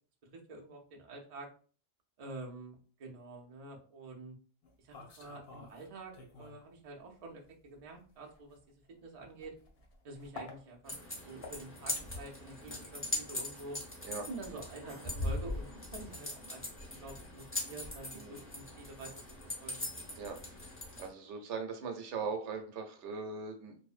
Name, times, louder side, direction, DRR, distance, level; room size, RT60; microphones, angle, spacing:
voice 1, 0.2-1.5 2.2-4.4 4.8-9.5 10.0-10.9 11.2-13.8 14.3-19.1 19.6-19.9, right 2 dB, 50° right, 0 dB, 0.4 m, -48 dB
sound 1, 4.6-6.7 7.0-14.8, left 3 dB, 65° left, 0.7 m, -53 dB
sound 2, 10.9-21.1, left 2 dB, 15° left, 0.5 m, -41 dB
voice 2, 18.1-18.5 20.2-20.6 21.0-23.8, right 5 dB, 75° right, 5 dB, 0.9 m, -40 dB
2.7 x 2.0 x 2.3 m, 0.40 s
omnidirectional pair, 1.2 m